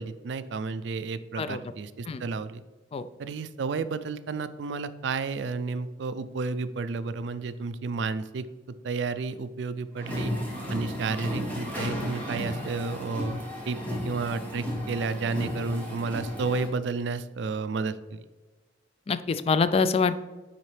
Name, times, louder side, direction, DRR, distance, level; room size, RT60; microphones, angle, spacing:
voice 1, 0.0-2.6 3.2-8.5 8.8-10.3 10.7-13.8 14.0-18.2, right 4 dB, 70° right, 13 dB, 0.4 m, -31 dB
sound 1, 10.0-16.7, equal, 10° left, 2.0 m, -34 dB
voice 2, 19.1-20.1, left 5 dB, 35° left, 13 dB, 0.3 m, -25 dB
9.9 x 4.1 x 3.3 m, 1.3 s
head